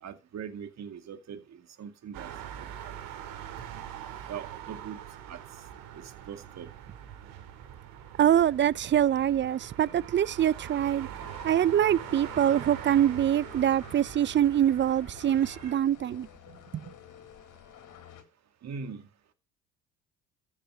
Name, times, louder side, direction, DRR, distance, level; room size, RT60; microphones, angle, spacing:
voice 1, 0.0-2.3 2.6-2.9 3.6-3.8 4.3-5.0 5.3-5.4 5.9-6.7 18.6-19.1, right 7 dB, 50° right, 2.3 m, -41 dB
sound 1, 2.1-15.7, right 10 dB, 70° right, 2.7 m, -43 dB
voice 2, 8.2-11.1 11.4-16.3 16.7-16.8, right 10 dB, 35° right, 0.5 m, -24 dB
sound 2, 11.2-18.2, left 9 dB, 55° left, 3.6 m, -51 dB
14.0 x 6.9 x 6.2 m
hypercardioid pair, 70°, 35 cm